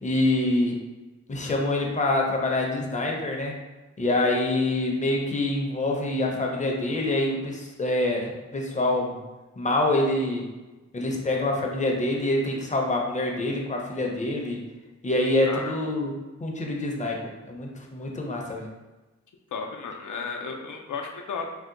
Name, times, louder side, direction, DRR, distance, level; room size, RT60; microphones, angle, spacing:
voice 1, 0.0-0.8 1.3-3.6 4.0-9.2 9.6-10.4 10.9-14.6 15.0-16.1 16.4-17.2 17.5-18.7, left 2 dB, 25° left, 0 dB, 0.5 m, -26 dB
voice 2, 15.4-15.8 19.5-21.5, left 5 dB, 85° left, 2 dB, 0.5 m, -34 dB
2.7 x 2.1 x 3.6 m, 1.2 s
wide cardioid pair, 90°, 29 cm